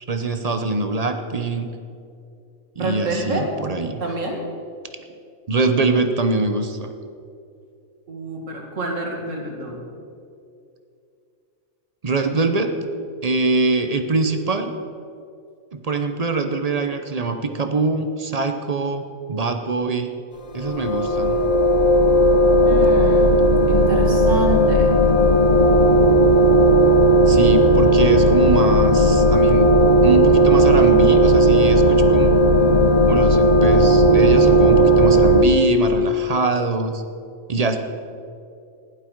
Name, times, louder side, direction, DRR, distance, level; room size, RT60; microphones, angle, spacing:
voice 1, 0.1-1.7 2.8-4.0 5.5-6.9 12.0-12.7 13.2-14.7 15.7-19.0 19.3-20.1 20.5-21.4 27.3-29.7 30.0-32.3 33.1-37.0 37.5-37.8, right 3 dB, 35° right, 6 dB, 0.7 m, -23 dB
voice 2, 2.8-3.6 4.0-4.5 8.1-9.9 22.6-23.4 23.6-25.0 32.6-32.9, right 2 dB, 65° right, 0 dB, 2.3 m, -27 dB
sound 1, 20.6-35.4, right 1 dB, 35° left, 0.6 m, -15 dB
16.0 x 11.0 x 4.6 m, 2.5 s
omnidirectional pair, 1.4 m